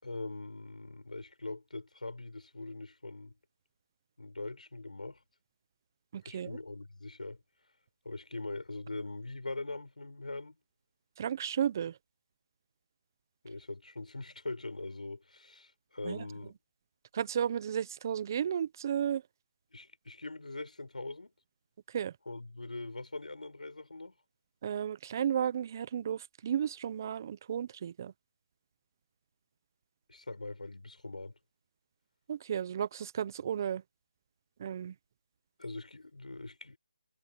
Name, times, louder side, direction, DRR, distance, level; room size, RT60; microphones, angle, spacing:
voice 1, 0.0-3.3 4.2-5.2 6.2-7.4 8.0-10.6 13.4-16.5 19.7-21.3 22.2-24.1 30.1-31.3 35.6-36.8, left 2 dB, 90° left, 6.0 m, -42 dB
voice 2, 6.1-6.6 11.2-11.9 16.0-16.2 17.1-19.2 21.9-22.1 24.6-28.1 32.3-33.8 34.6-34.9, right 9 dB, 25° right, 0.7 m, -33 dB
figure-of-eight pair, 165°, 4 cm